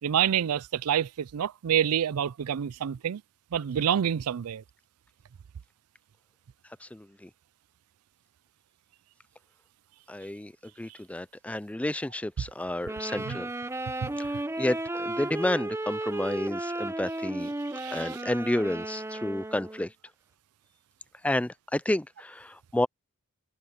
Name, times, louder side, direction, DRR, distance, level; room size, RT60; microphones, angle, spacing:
voice 1, 0.0-3.2 3.5-4.6 13.3-13.4 14.0-14.1 17.7-18.2, right 9 dB, 85° right, 0.4 m, -27 dB
voice 2, 6.8-7.3 10.1-10.5 10.8-13.5 14.2-17.5 17.9-19.9 21.2-22.9, left 1 dB, 5° left, 0.3 m, -30 dB
sound 1, 12.8-19.9, right 2 dB, 10° right, 0.8 m, -34 dB
head